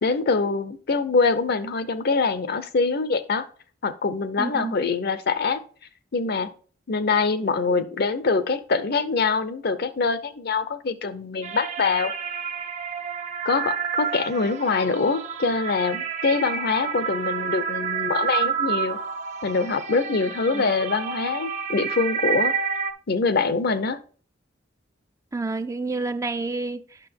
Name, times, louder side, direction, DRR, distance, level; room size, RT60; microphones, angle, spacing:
voice 1, 0.0-3.5 3.8-5.6 6.1-6.5 6.9-12.1 13.4-19.0 19.4-22.5 23.1-24.0, left 4 dB, 55° left, 0.6 m, -24 dB
voice 2, 4.4-4.7 20.5-20.6 25.3-27.0, right 3 dB, 15° right, 0.3 m, -29 dB
sound 1, 11.4-22.9, right 6 dB, 35° right, 0.8 m, -29 dB
9.0 x 6.0 x 3.5 m
head